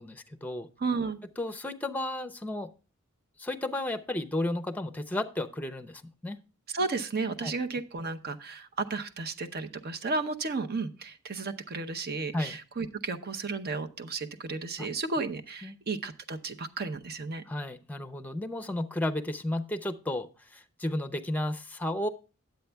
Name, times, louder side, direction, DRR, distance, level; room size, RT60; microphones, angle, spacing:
voice 1, 0.0-0.7 1.4-2.7 3.4-6.4 7.4-7.5 12.3-12.6 14.8-14.9 15.6-15.8 17.5-22.1, left 1 dB, 10° left, 9 dB, 0.6 m, -33 dB
voice 2, 0.8-1.2 6.7-17.4, right 3 dB, 45° right, 8 dB, 0.7 m, -33 dB
10.0 x 8.0 x 3.4 m, 0.33 s
head